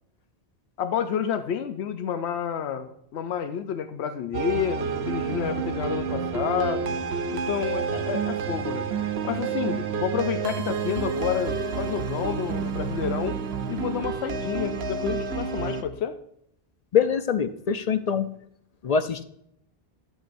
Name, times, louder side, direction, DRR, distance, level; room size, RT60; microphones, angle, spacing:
voice 1, 0.8-6.9 7.3-8.9 9.2-13.4 13.7-16.2, left 8 dB, 90° left, 9 dB, 0.9 m, -29 dB
sound 1, 4.3-15.8, right 6 dB, 75° right, 1.0 m, -29 dB
voice 2, 16.9-18.3 18.8-19.2, left 7 dB, 55° left, 10 dB, 0.5 m, -24 dB
13.0 x 7.5 x 2.6 m, 0.72 s
omnidirectional pair, 1.1 m